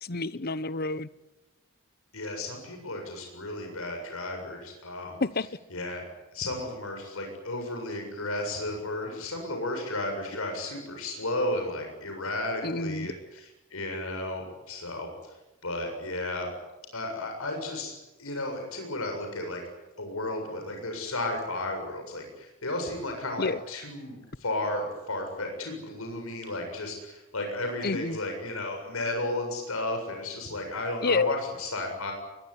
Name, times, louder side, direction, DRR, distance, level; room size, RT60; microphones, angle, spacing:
voice 1, 0.0-1.1 5.2-5.5 12.6-13.1 23.4-23.6 27.8-28.2 31.0-31.4, left 3 dB, 45° left, 1.0 m, -28 dB
voice 2, 2.1-5.2 5.7-6.0 6.3-13.4 13.7-15.1 15.6-16.5 16.9-19.6 20.0-32.1, left 2 dB, 90° left, 7.4 m, -33 dB
23.0 x 22.5 x 9.8 m
head